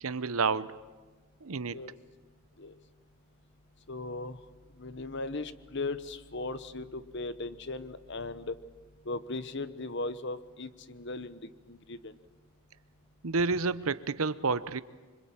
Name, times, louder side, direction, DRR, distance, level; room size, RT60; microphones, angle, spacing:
voice 1, 0.0-0.7 1.4-1.8 13.2-14.8, right 4 dB, 75° right, 16 dB, 0.8 m, -29 dB
voice 2, 3.9-4.4 4.8-8.6 9.0-11.4 11.7-12.1, left 3 dB, 55° left, 14 dB, 1.1 m, -37 dB
26.5 x 25.0 x 8.8 m, 1.3 s
head